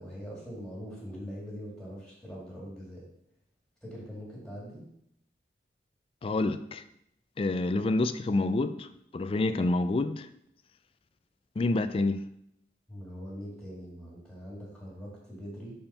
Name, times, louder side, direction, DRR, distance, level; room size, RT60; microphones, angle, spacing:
voice 1, 0.0-3.0 3.8-4.8 12.9-15.7, equal, 5° left, 2.3 m, -42 dB
voice 2, 6.2-6.8 7.4-8.9 9.1-10.3 11.6-12.2, left 2 dB, 30° left, 0.3 m, -28 dB
5.4 x 4.3 x 5.6 m
head